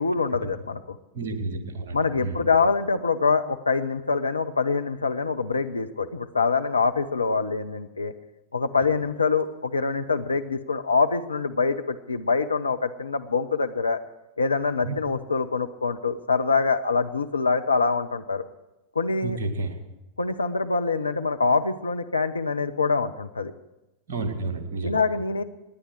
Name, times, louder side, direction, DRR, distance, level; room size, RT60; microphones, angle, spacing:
voice 1, 0.0-1.0 1.9-8.1 8.5-14.0 14.4-18.4 18.9-19.4 20.2-23.5 24.8-25.4, left 4 dB, 75° left, 8 dB, 0.8 m, -25 dB
voice 2, 1.1-2.5 14.8-15.0 19.2-19.8 24.1-25.0, right 3 dB, 60° right, 7 dB, 2.2 m, -31 dB
27.0 x 10.5 x 4.8 m, 0.98 s
figure-of-eight pair, 90°, 0 cm